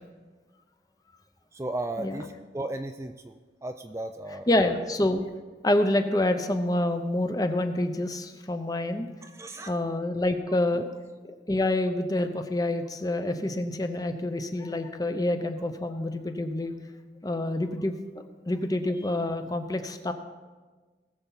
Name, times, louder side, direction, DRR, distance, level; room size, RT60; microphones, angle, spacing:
voice 1, 1.5-4.7 9.2-9.7, right 2 dB, 15° right, 6 dB, 0.4 m, -35 dB
voice 2, 4.5-5.2 5.6-9.1 9.7-10.9 11.2-16.7 17.2-18.0 18.5-20.1, left 1 dB, 20° left, 7 dB, 0.7 m, -27 dB
19.5 x 7.0 x 4.0 m, 1.3 s
head